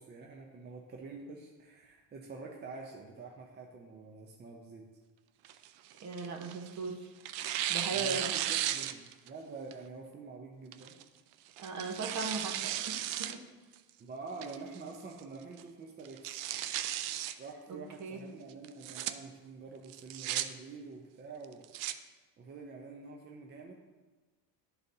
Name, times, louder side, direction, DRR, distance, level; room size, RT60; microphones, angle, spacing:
voice 1, 0.0-4.8 7.9-11.0 14.0-16.5 17.4-21.9 22.4-23.7, right 4 dB, 25° right, 0 dB, 0.6 m, -47 dB
Tearing, 5.4-6.8 7.3-9.3 9.7-9.8 10.7-11.0 11.6-13.4 13.7-13.8 14.4-14.8 15.2-15.3 15.6-15.7 16.1-17.3 18.6-19.1 19.9-20.4 21.4-21.9, right 12 dB, 75° right, 0.6 m, -35 dB
voice 2, 6.0-7.1 7.7-8.2 11.6-13.4 18.0-18.2, right 4 dB, 40° right, 3 dB, 1.1 m, -38 dB
12.0 x 4.0 x 2.7 m, 1.3 s
cardioid pair, 130°, 43 cm